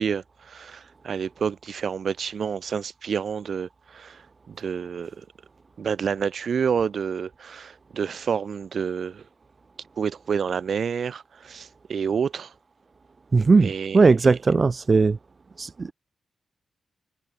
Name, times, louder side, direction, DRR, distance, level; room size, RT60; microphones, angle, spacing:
voice 1, 0.0-5.2 5.8-9.2 10.0-12.5 13.6-14.3, right 6 dB, 55° right, 7.9 m, -29 dB
voice 2, 13.3-15.2 15.6-15.9, right 4 dB, 35° right, 1.4 m, -18 dB
wide cardioid pair, 150°, 0 cm